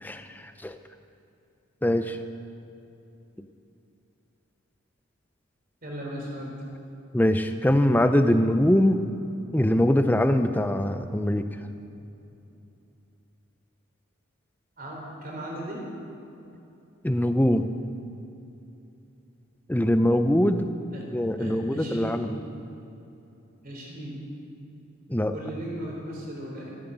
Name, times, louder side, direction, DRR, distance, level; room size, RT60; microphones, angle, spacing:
voice 1, 0.0-0.8 1.8-2.2 7.1-9.0 9.5-11.5 17.0-17.7 19.7-20.7 21.1-22.3 25.1-25.3, left 1 dB, 10° left, 8 dB, 0.6 m, -22 dB
voice 2, 5.8-6.6 14.8-15.9 20.9-21.1 21.4-22.3 23.6-24.3 25.3-26.7, right 1 dB, 45° right, -1 dB, 3.8 m, -37 dB
14.5 x 11.0 x 8.0 m, 2.8 s
head